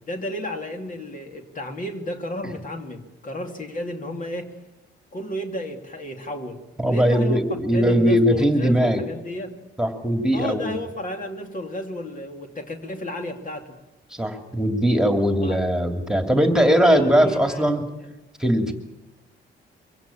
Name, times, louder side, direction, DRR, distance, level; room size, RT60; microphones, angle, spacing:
voice 1, 0.1-4.6 5.1-9.6 10.3-13.8 15.4-15.6 16.9-17.7, left 1 dB, 40° left, 4 dB, 2.7 m, -33 dB
voice 2, 6.8-9.0 9.8-10.7 14.1-17.8 18.4-18.7, equal, 5° right, 5 dB, 2.7 m, -20 dB
24.0 x 16.0 x 8.9 m, 0.99 s
cardioid pair, 90°, 20 cm